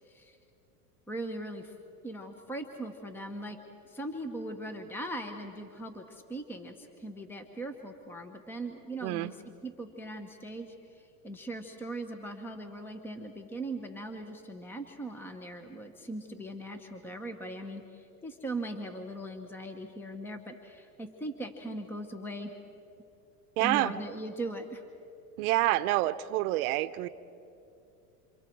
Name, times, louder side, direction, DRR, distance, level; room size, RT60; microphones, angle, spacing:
voice 1, 1.1-1.7 2.0-3.6 3.9-9.4 9.6-22.5 23.6-24.8, right 1 dB, 5° left, 6 dB, 1.3 m, -40 dB
voice 2, 9.0-9.3 23.6-23.9 25.4-27.1, right 17 dB, 65° right, 13 dB, 1.0 m, -27 dB
28.0 x 27.5 x 4.7 m, 2.7 s
supercardioid pair, 125°, 47 cm